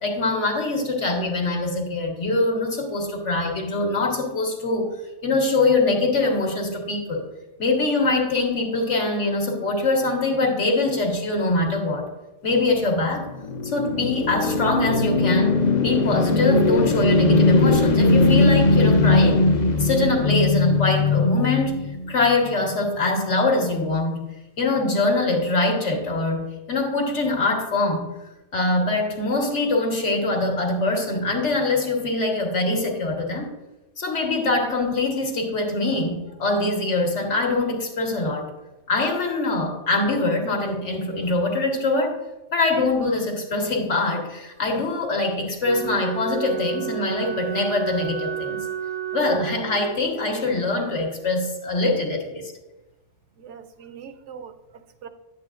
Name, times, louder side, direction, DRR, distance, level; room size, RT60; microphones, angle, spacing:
voice 1, 0.0-4.9 5.2-7.2 7.6-12.1 12.4-13.3 13.6-19.4 19.8-21.8 22.1-24.2 24.6-28.1 28.5-33.5 34.0-38.5 38.9-42.2 42.5-48.7 49.1-52.5, left 2 dB, 70° left, 1.6 m, -23 dB
sound 1, 13.0-22.3, left 3 dB, 45° left, 0.6 m, -19 dB
Wind instrument woodwind instrument, 45.6-50.0, right 10 dB, 30° right, 0.5 m, -31 dB
voice 2, 53.4-55.1, right 7 dB, 75° right, 0.9 m, -42 dB
10.0 x 8.3 x 2.4 m
omnidirectional pair, 1.3 m